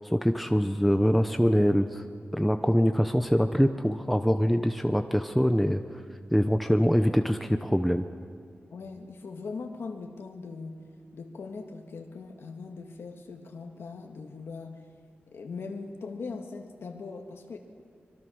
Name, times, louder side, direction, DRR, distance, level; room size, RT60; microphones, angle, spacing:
voice 1, 0.1-2.0 2.3-5.8 6.3-8.1, equal, ahead, 7 dB, 0.7 m, -24 dB
voice 2, 8.7-10.9 11.1-14.9 15.3-17.6, left 4 dB, 90° left, 3 dB, 1.8 m, -40 dB
25.0 x 23.5 x 6.3 m, 2.1 s
wide cardioid pair, 165°, 4 cm